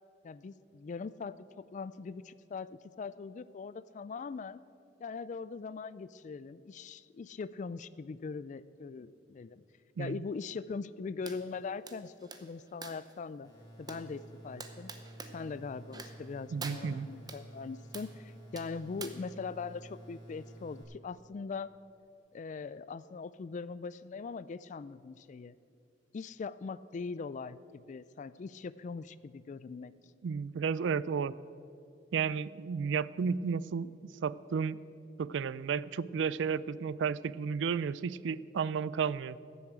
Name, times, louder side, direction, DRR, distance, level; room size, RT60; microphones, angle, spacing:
voice 1, 0.2-4.6 5.0-9.6 10.0-13.5 13.8-14.9 15.3-21.7 22.3-25.5 26.1-29.9, left 4 dB, 40° left, 17 dB, 0.3 m, -41 dB
sound 1, 11.2-11.4 11.9-13.1 13.9-14.0 14.6-15.3 15.9-16.3 16.6-17.4 17.9-18.1 18.5-19.1, right 4 dB, 20° right, 0.9 m, -45 dB
sound 2, 13.4-20.8, right 1 dB, 25° left, 3.9 m, -51 dB
voice 2, 16.5-17.1 30.2-31.3 32.1-33.9 34.2-34.8 35.2-39.4, right 6 dB, 70° right, 18 dB, 0.3 m, -32 dB
15.0 x 7.1 x 8.0 m, 2.5 s
head